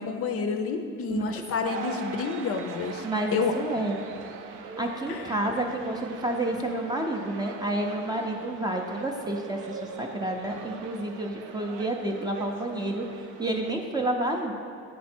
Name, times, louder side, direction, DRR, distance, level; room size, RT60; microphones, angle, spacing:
voice 1, 0.0-3.1 3.3-3.5 5.1-5.2, left 5 dB, 40° left, 5 dB, 0.5 m, -29 dB
sound 1, 1.6-13.7, right 5 dB, 65° right, 0.6 m, -41 dB
voice 2, 3.0-4.0 4.8-14.5, right 1 dB, 10° right, 1 dB, 0.5 m, -30 dB
8.6 x 3.1 x 4.4 m, 2.5 s
supercardioid pair, 110°, 34 cm